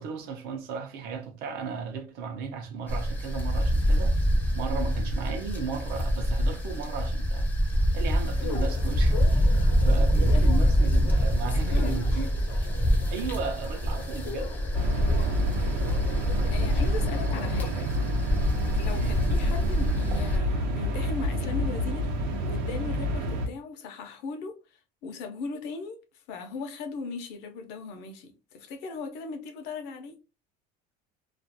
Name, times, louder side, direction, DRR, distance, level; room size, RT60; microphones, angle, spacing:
voice 1, 0.0-4.2 4.5-7.5 7.9-12.8 13.1-14.6 18.9-19.2, right 6 dB, 50° right, 0.6 m, -35 dB
sound 1, 2.9-20.4, equal, 10° left, 0.5 m, -25 dB
sound 2, 8.4-17.7, left 5 dB, 85° left, 0.8 m, -42 dB
voice 2, 10.1-10.5 11.4-12.1 15.2-15.6 16.1-17.9 18.7-22.1 22.4-24.6 25.0-26.0 26.3-30.2, left 4 dB, 55° left, 0.7 m, -38 dB
sound 3, 14.7-23.5, left 1 dB, 90° right, 0.8 m, -28 dB
2.4 x 2.4 x 2.7 m
cardioid pair, 160°, 21 cm